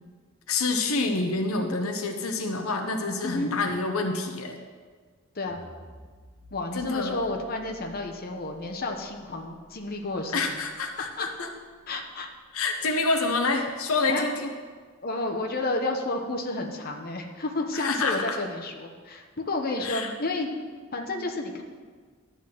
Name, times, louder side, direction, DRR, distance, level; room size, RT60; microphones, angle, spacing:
voice 1, 0.5-4.6 6.8-7.2 10.3-11.5 12.5-14.5 17.7-18.4 19.8-20.1, left 3 dB, 80° left, 4 dB, 0.8 m, -27 dB
sound 1, 5.5-11.8, equal, 55° right, 2.4 m, -53 dB
voice 2, 6.5-10.6 11.0-11.3 11.9-12.3 14.1-14.3 15.0-20.5 20.9-21.6, left 2 dB, 45° left, 2 dB, 1.0 m, -31 dB
11.5 x 4.1 x 7.6 m, 1.6 s
head